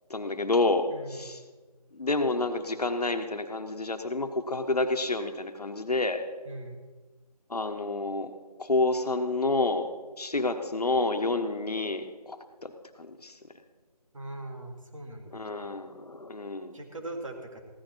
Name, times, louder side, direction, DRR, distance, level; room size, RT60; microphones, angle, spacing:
voice 1, 0.1-1.4 1.9-6.2 7.5-8.3 8.6-9.9 10.2-12.7 13.0-13.3 15.3-16.8, left 2 dB, 70° left, 7 dB, 1.3 m, -29 dB
voice 2, 0.9-1.3 6.5-6.8 14.1-15.4 16.7-17.6, right 2 dB, 50° right, 3 dB, 2.0 m, -40 dB
15.5 x 10.5 x 4.6 m, 1.3 s
figure-of-eight pair, 170°, 21 cm